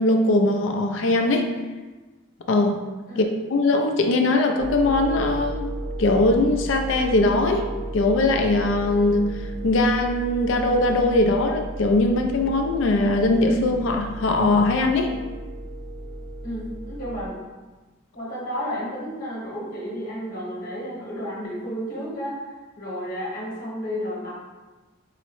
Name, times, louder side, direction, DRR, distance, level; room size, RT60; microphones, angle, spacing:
voice 1, 0.0-1.5 2.5-2.8 3.2-5.7 6.0-7.7 7.9-9.3 9.6-15.1, left 2 dB, 65° left, 4 dB, 0.4 m, -21 dB
sound 1, 4.6-17.3, right 1 dB, 10° right, 0.4 m, -34 dB
voice 2, 16.4-17.4 18.1-24.3, equal, 45° left, -6 dB, 1.1 m, -32 dB
4.6 x 2.1 x 3.0 m, 1.2 s
head